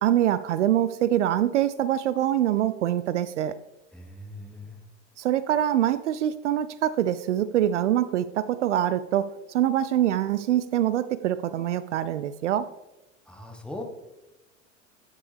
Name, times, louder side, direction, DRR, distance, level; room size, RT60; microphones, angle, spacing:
voice 1, 0.0-3.6 5.2-12.7, right 11 dB, 65° right, 15 dB, 0.5 m, -24 dB
voice 2, 3.9-4.8 13.3-13.8, left 1 dB, ahead, 3 dB, 1.5 m, -40 dB
12.0 x 9.8 x 3.4 m, 0.99 s
figure-of-eight pair, 80°, 38 cm